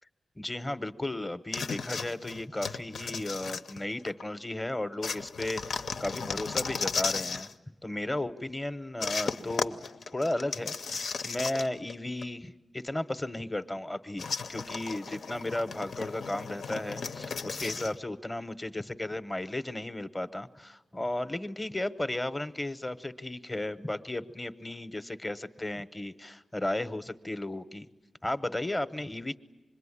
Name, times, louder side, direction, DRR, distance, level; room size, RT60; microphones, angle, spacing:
voice 1, 0.4-7.5 7.8-9.8 10.1-27.9 28.2-29.4, left 1 dB, 15° left, 12 dB, 0.9 m, -34 dB
sound 1, 1.5-4.2 5.0-7.5 9.0-11.9 12.2-12.3 14.2-18.0, left 5 dB, 80° left, 0.8 m, -35 dB
26.0 x 21.5 x 9.9 m, 1.1 s
wide cardioid pair, 120°, 0 cm